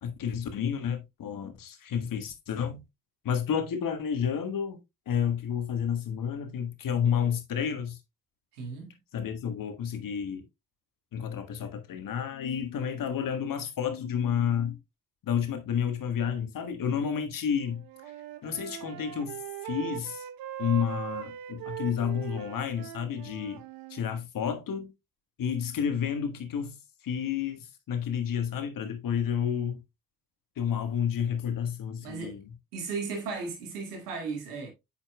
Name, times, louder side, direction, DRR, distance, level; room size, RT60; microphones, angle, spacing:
voice 1, 0.0-2.8 3.2-8.0 9.1-10.4 11.1-14.8 15.2-17.8 18.4-20.3 20.6-23.6 23.9-24.9 25.4-26.8 27.0-29.8 30.6-32.4, left 8 dB, 45° left, 1.4 m, -30 dB
voice 2, 8.5-9.0 32.0-32.4 32.7-34.7, right 4 dB, 75° right, 2.0 m, -35 dB
Wind instrument woodwind instrument, 17.6-24.1, right 12 dB, 50° right, 1.0 m, -40 dB
8.6 x 5.7 x 2.2 m
figure-of-eight pair, 45°, 46 cm